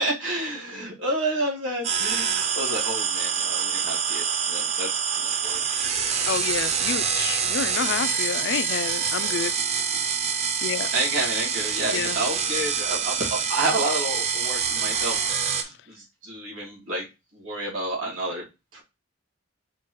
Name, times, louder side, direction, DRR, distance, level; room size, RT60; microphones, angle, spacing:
voice 1, 0.0-4.9 5.2-5.6 10.9-17.1 17.3-18.4 18.7-18.8, right 2 dB, 80° right, 2.0 m, -30 dB
sound 1, 1.8-15.6, right 6 dB, 35° right, 0.5 m, -26 dB
voice 2, 6.3-9.5 10.6-10.9 11.9-12.2, left 7 dB, 60° left, 0.3 m, -29 dB
4.3 x 2.3 x 4.6 m
head